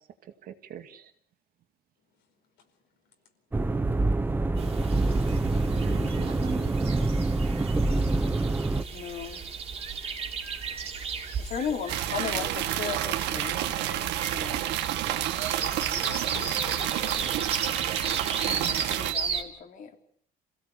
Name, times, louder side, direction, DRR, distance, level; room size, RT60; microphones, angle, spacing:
voice 1, 0.2-1.1 5.3-5.4 5.7-6.8, right 10 dB, 55° right, 7 dB, 2.3 m, -42 dB
sound 1, 3.5-8.8, right 2 dB, 10° right, 1.1 m, -26 dB
sound 2, 4.6-19.4, right 6 dB, 35° right, 3.4 m, -35 dB
voice 2, 8.9-9.4 11.4-14.7 15.1-15.2 15.5-16.2 18.6-20.0, left 7 dB, 50° left, 5 dB, 3.8 m, -37 dB
sound 3, 11.9-19.1, right 13 dB, 85° right, 1.8 m, -29 dB
voice 3, 15.7-17.5, left 7 dB, 80° left, 5 dB, 5.0 m, -46 dB
27.5 x 16.5 x 8.4 m, 0.65 s
cardioid pair, 140°, 17 cm